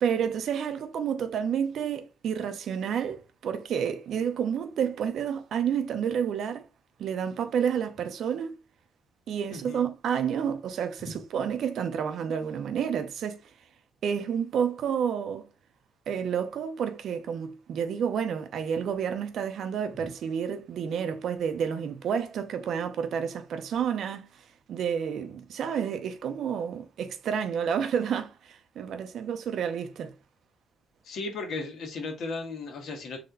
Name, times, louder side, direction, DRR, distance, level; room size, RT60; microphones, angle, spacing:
voice 1, 0.0-6.7 7.0-8.6 9.3-13.4 14.0-15.5 16.1-30.1, right 8 dB, 70° right, 0.8 m, -30 dB
voice 2, 9.5-9.8 31.0-33.2, left 3 dB, 70° left, 1.8 m, -35 dB
4.2 x 3.2 x 3.9 m
cardioid pair, 90°, 0 cm